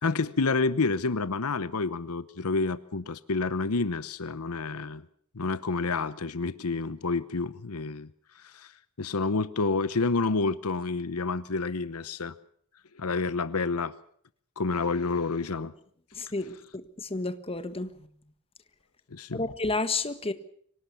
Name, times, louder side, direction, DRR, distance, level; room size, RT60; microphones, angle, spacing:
voice 1, 0.0-5.0 5.3-8.1 8.4-8.7 9.0-12.3 13.0-13.9 14.6-15.7 19.1-19.4, left 3 dB, 75° left, 0.9 m, -29 dB
voice 2, 16.1-17.9 19.3-20.3, left 3 dB, 25° left, 1.5 m, -31 dB
25.0 x 18.0 x 7.0 m
head